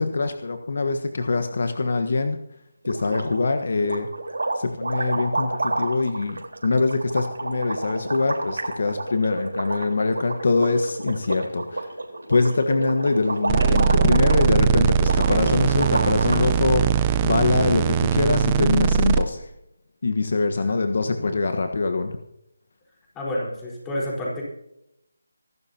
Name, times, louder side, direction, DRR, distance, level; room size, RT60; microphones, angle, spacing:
voice 1, 0.0-2.4 2.8-4.1 4.5-11.9 12.3-19.5 20.0-22.2, left 3 dB, 60° left, 7 dB, 1.4 m, -23 dB
sound 1, 2.9-3.5 3.8-16.5, right 2 dB, 90° right, 4.3 m, -30 dB
sound 2, 13.5-19.2, right 7 dB, 20° right, 0.7 m, -20 dB
voice 2, 20.6-21.3 23.1-24.4, left 1 dB, 10° left, -4 dB, 4.5 m, -31 dB
25.5 x 12.5 x 2.9 m, 0.81 s
figure-of-eight pair, 165°, 0 cm